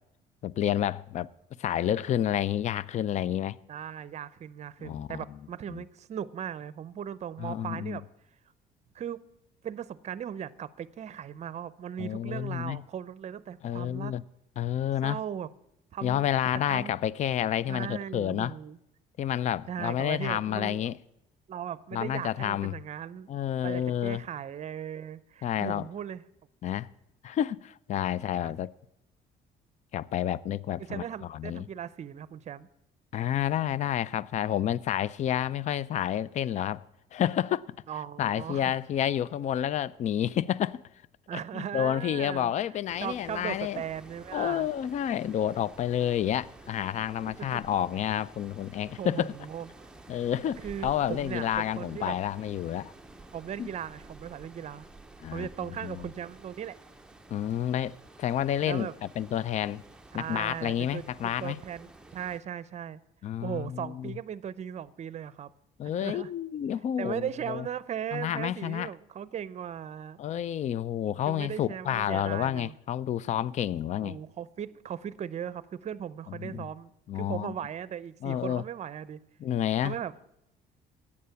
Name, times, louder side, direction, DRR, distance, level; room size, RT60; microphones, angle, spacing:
voice 1, 0.4-1.3 1.6-3.6 4.8-5.2 5.7-5.8 7.4-8.0 12.0-12.8 13.6-14.2 14.6-15.2 16.0-18.5 19.2-20.9 21.9-22.7 23.3-24.2 25.4-25.9 26.6-26.9 27.2-28.7 29.9-31.0 31.3-31.6 33.1-36.8 37.1-37.6 38.2-40.8 41.3-43.8 44.3-49.3 50.1-52.9 53.6-53.7 55.2-55.5 55.8-56.0 57.3-59.8 60.1-61.6 63.2-64.1 65.8-67.7 68.1-68.9 70.2-74.2 76.3-76.7 77.1-77.5 78.2-78.6 79.4-80.0, left 10 dB, 45° left, 0.4 m, -30 dB
voice 2, 3.7-8.0 8.9-9.2 9.6-14.1 15.0-15.5 15.9-16.3 16.7-16.9 17.7-18.8 19.7-20.9 21.5-23.3 23.6-26.2 28.4-28.5 30.8-32.7 37.9-38.8 41.3-42.5 43.0-44.7 47.4-47.6 49.0-49.9 50.6-52.2 53.3-54.9 55.3-56.8 58.6-58.9 60.1-63.0 63.4-65.5 66.0-66.3 67.0-70.2 71.3-72.7 74.0-79.2 79.8-80.2, right 9 dB, 40° right, 0.6 m, -38 dB
sound 1, 42.9-62.4, right 2 dB, 5° right, 0.7 m, -51 dB
11.5 x 8.5 x 7.0 m
cardioid pair, 110°, 17 cm